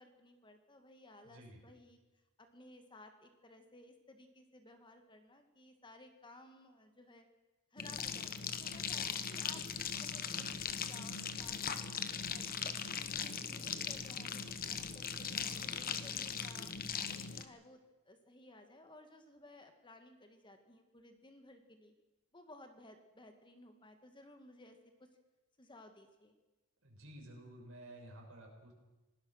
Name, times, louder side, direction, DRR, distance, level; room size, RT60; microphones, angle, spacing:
voice 1, 0.0-2.0 2.4-7.2 7.7-12.7 13.1-16.7 17.1-21.9 22.3-25.1 25.6-26.3, left 2 dB, 20° left, 6 dB, 1.7 m, -58 dB
voice 2, 1.2-1.6 26.8-28.7, right 1 dB, 60° right, 0 dB, 6.7 m, -53 dB
sound 1, 7.8-17.4, left 7 dB, 40° left, 1.2 m, -39 dB
27.5 x 19.0 x 6.4 m, 1.1 s
head